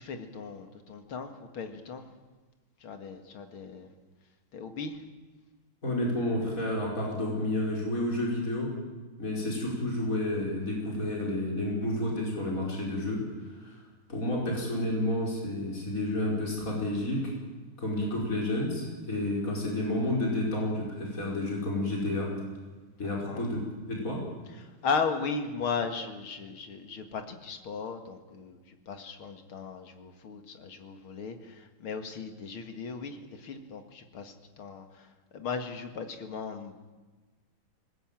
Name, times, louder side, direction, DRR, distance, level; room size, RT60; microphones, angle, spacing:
voice 1, 0.0-2.0 2.8-3.9 4.5-5.0 23.2-23.4 24.8-28.6 28.9-34.9 35.3-36.9, left 5 dB, 80° left, 7 dB, 2.7 m, -36 dB
voice 2, 5.8-8.7 9.2-13.2 13.6-13.7 14.1-17.3 17.8-22.3 23.0-24.2, left 1 dB, 40° left, -2 dB, 5.5 m, -30 dB
21.0 x 19.5 x 9.0 m, 1.3 s
omnidirectional pair, 2.3 m